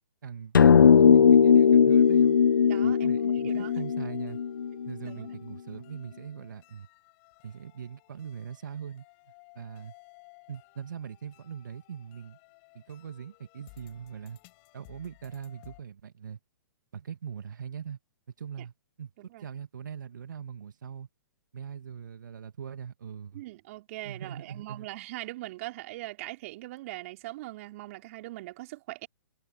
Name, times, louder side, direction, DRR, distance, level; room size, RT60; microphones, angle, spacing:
voice 1, 0.2-2.4 2.8-4.4 4.8-6.9 7.4-9.0 9.5-9.9 10.5-12.4 12.7-14.4 14.7-16.4 16.9-18.0 18.4-18.7 19.0-19.1 19.4-21.1 21.5-23.4 24.0-24.9, right 8 dB, 65° right, 1.8 m, -41 dB
sound 1, 0.5-5.1, left 7 dB, 80° left, 0.4 m, -19 dB
sound 2, 1.6-15.8, left 33 dB, 35° left, 6.2 m, -57 dB
voice 2, 2.6-3.8 5.0-5.4 19.2-19.5 23.3-29.1, right 18 dB, 45° right, 3.2 m, -41 dB
figure-of-eight pair, 120°, 11 cm